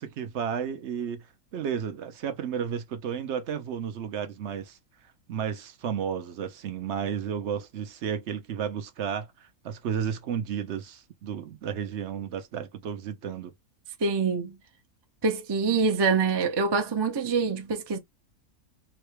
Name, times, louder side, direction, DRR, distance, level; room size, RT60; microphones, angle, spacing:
voice 1, 0.0-4.8 5.3-13.5, right 8 dB, 60° right, 0.8 m, -33 dB
voice 2, 14.0-14.6 15.2-18.0, right 4 dB, 30° right, 0.5 m, -25 dB
3.9 x 2.2 x 3.1 m
omnidirectional pair, 1.5 m